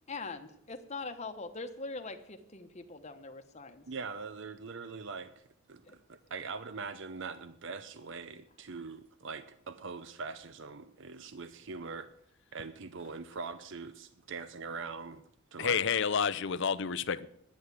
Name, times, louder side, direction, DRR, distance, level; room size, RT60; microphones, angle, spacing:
voice 1, 0.1-3.8 5.9-6.0, left 3 dB, 30° left, 1.1 m, -42 dB
voice 2, 3.9-5.4 5.7-12.1 12.5-15.2 15.5-15.8, right 4 dB, 55° right, 0.6 m, -42 dB
voice 3, 15.6-17.3, left 6 dB, 55° left, 0.6 m, -29 dB
10.5 x 9.4 x 8.2 m
head